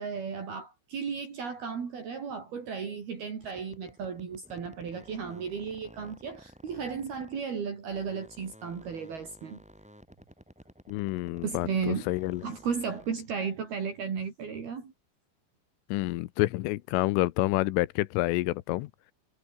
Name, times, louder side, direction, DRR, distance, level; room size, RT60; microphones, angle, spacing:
voice 1, 0.0-9.6 11.4-12.1 12.4-14.9, right 6 dB, 55° right, 5.6 m, -34 dB
sound 1, 3.4-7.6 7.9-13.3, equal, ahead, 6.4 m, -53 dB
voice 2, 10.9-12.4 15.9-19.1, left 19 dB, 85° left, 3.5 m, -28 dB
omnidirectional pair, 5.6 m